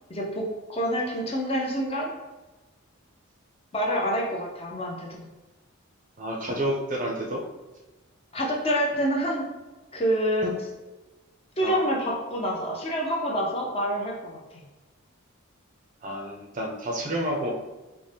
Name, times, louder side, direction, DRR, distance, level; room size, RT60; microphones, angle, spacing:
voice 1, 0.1-2.1 3.7-5.3 8.3-9.5 9.9-10.5 11.6-14.6, equal, 25° left, -2 dB, 0.5 m, -27 dB
voice 2, 6.2-7.4 10.4-10.5 11.6-11.8 16.0-17.5, right 1 dB, 35° right, 0 dB, 0.5 m, -29 dB
4.1 x 2.1 x 3.3 m, 1.1 s
head